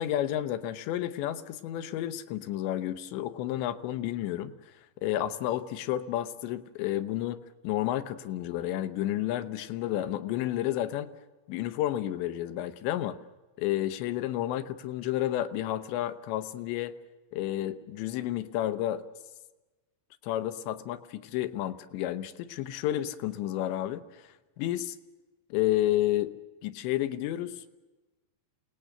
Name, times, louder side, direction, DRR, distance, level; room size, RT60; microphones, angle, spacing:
voice 1, 0.0-4.5 5.0-11.1 11.5-13.2 13.6-16.9 17.3-19.0 20.2-24.2 24.6-25.0 25.5-26.4 26.6-27.6, left 13 dB, 85° left, 11 dB, 3.2 m, -31 dB
28.0 x 18.5 x 6.6 m, 1.1 s
omnidirectional pair, 5.0 m